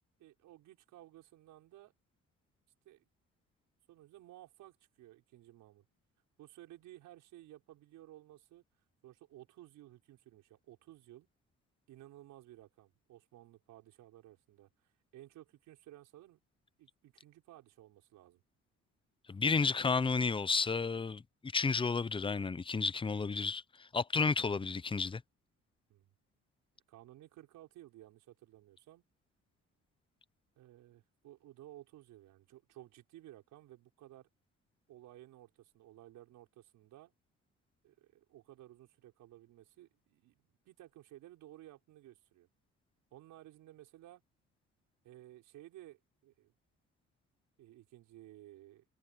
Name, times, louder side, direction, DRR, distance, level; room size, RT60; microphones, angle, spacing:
voice 1, 0.2-1.9 2.8-3.1 3.9-5.9 6.4-8.6 9.0-11.3 11.9-16.4 16.8-18.4 25.9-26.1 26.9-29.0 30.6-34.3 34.9-37.1 37.8-42.5 43.1-44.2 45.0-46.5 47.6-48.8, right 14 dB, 90° right, 5.8 m, -56 dB
voice 2, 19.3-21.2 21.5-25.2, left 4 dB, 15° left, 0.6 m, -32 dB
cardioid pair, 90°, 30 cm